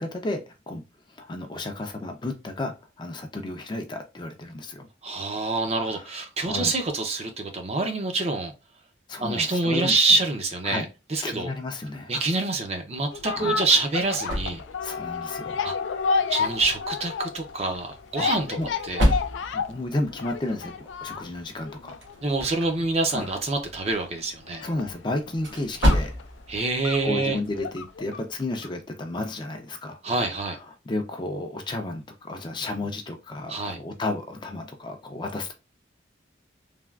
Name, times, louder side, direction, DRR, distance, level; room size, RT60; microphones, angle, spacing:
voice 1, 0.0-4.9 5.7-6.1 6.4-6.7 9.1-10.0 10.6-10.9 11.2-12.1 13.3-13.6 14.8-15.6 18.2-18.3 18.6-18.7 19.5-21.9 23.1-23.3 24.6-26.1 27.0-30.0 30.5-35.5, left 2 dB, 25° left, 0.4 m, -32 dB
voice 2, 5.0-8.5 9.2-11.5 12.1-14.6 15.6-15.7 16.3-18.6 18.8-19.1 22.2-24.6 26.5-27.4 30.0-30.6 33.5-33.8, right 3 dB, 35° right, 0.5 m, -26 dB
sound 1, 13.1-28.3 28.6-28.7, left 5 dB, 85° left, 0.4 m, -32 dB
sound 2, 13.5-27.9, equal, 75° right, 1.1 m, -32 dB
3.3 x 2.3 x 2.3 m
head